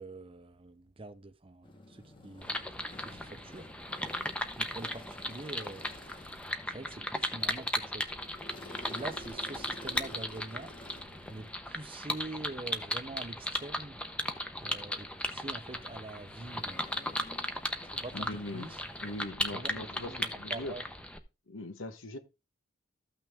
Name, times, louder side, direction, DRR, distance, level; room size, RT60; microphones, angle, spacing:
voice 1, 0.0-2.5 3.0-3.7 4.6-5.9 6.7-8.3 8.9-10.7 11.3-14.0 14.6-16.9 17.8-18.8 19.5-20.9, right 2 dB, 30° right, 0.7 m, -45 dB
sound 1, 1.6-19.3, left 1 dB, 25° left, 1.4 m, -52 dB
sound 2, 2.4-21.2, left 1 dB, 5° left, 0.8 m, -37 dB
voice 2, 18.1-18.7 19.0-20.7 21.5-22.2, left 1 dB, 90° left, 1.3 m, -40 dB
13.5 x 6.0 x 3.5 m
head